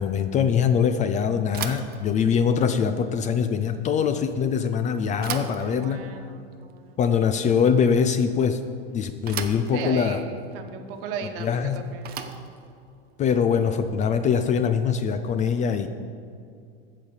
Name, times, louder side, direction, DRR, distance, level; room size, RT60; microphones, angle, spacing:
voice 1, 0.0-6.1 7.0-8.6 8.9-10.2 11.4-11.8 13.2-15.9, left 7 dB, 25° left, 9 dB, 0.5 m, -23 dB
Bicycle / Thump thud, 1.5-14.6, right 8 dB, 30° right, 0.8 m, -40 dB
voice 2, 5.6-7.0 9.7-12.2, right 6 dB, 60° right, 6 dB, 1.4 m, -36 dB
14.0 x 5.2 x 7.2 m, 2.3 s
supercardioid pair, 130°, 31 cm